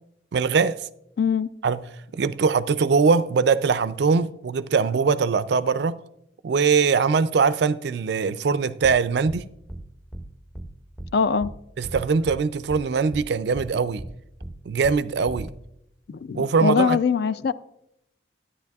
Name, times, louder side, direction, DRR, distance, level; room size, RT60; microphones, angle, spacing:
voice 1, 0.3-0.8 1.6-1.8 2.1-6.0 6.4-9.5 11.8-14.0 14.7-15.5 16.3-17.0, right 5 dB, 55° right, 0.3 m, -22 dB
voice 2, 1.2-1.5 11.1-11.5 16.2-17.5, left 6 dB, 55° left, 0.3 m, -22 dB
sound 1, 8.8-9.0 9.3-9.4 9.7-9.8 10.1-10.3 10.5-10.7 11.0-11.1 11.4-11.5 11.8-12.4 12.7-12.8 13.1-13.3 13.5-13.7 14.0-14.1 14.4-14.5 14.8-15.0 15.3-15.5, right 1 dB, ahead, 0.5 m, -36 dB
13.5 x 9.8 x 2.3 m
head